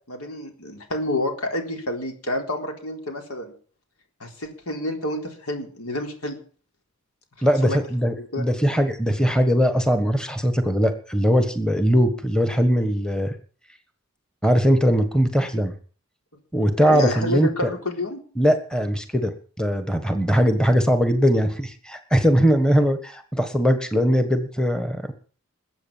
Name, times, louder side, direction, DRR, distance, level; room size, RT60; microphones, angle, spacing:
voice 1, 0.1-3.5 4.2-6.4 7.6-7.8 8.2-8.5 16.8-18.2, left 1 dB, 80° left, 4 dB, 4.0 m, -29 dB
voice 2, 7.4-13.3 14.4-15.7 16.5-17.7 18.4-19.3 19.6-25.1, equal, 5° left, 8 dB, 1.4 m, -20 dB
21.0 x 8.4 x 7.4 m, 0.43 s
head